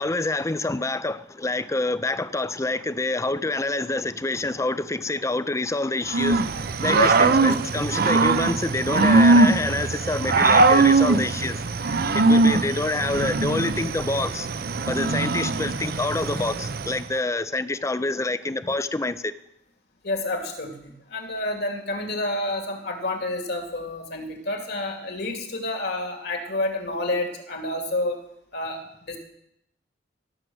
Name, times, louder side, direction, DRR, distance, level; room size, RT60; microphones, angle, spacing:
voice 1, 0.0-6.5 6.8-11.6 12.1-14.5 14.9-19.3, left 2 dB, 15° left, 0.5 m, -27 dB
Growling / Cricket, 6.1-17.0, right 3 dB, 55° right, 0.7 m, -21 dB
voice 2, 6.9-7.5 20.0-28.2 28.5-29.2, left 2 dB, 60° left, 2.4 m, -29 dB
17.0 x 6.5 x 7.8 m
head